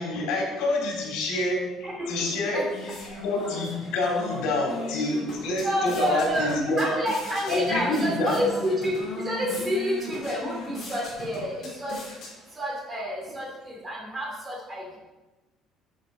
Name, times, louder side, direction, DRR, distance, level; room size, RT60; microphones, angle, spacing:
voice 1, 0.0-1.7 2.1-2.6 3.1-6.9 7.5-8.4, left 2 dB, 75° left, -1 dB, 3.7 m, -27 dB
voice 2, 1.8-2.6 4.9-5.0 5.6-12.0 12.6-15.0, equal, 15° right, -2 dB, 2.7 m, -29 dB
sound 1, 2.2-12.8, left 2 dB, 40° left, 3.7 m, -39 dB
9.2 x 7.7 x 5.1 m, 1.1 s
cardioid pair, 180°, 0 cm